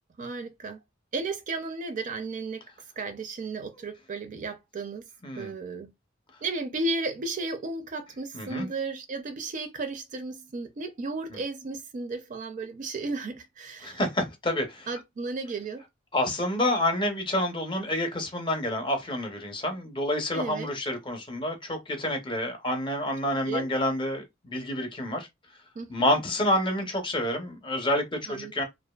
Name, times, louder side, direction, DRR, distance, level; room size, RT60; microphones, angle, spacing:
voice 1, 0.2-0.8 1.1-2.6 3.0-5.1 5.4-5.9 6.4-14.0 14.9-15.8 20.3-20.7 23.5-23.7 25.8-26.1 28.3-28.6, right 3 dB, 40° right, 0.4 m, -34 dB
voice 2, 5.2-5.5 8.3-8.7 13.8-14.9 16.1-25.3 25.9-28.6, left 1 dB, 25° left, 0.6 m, -28 dB
2.4 x 2.3 x 2.2 m
head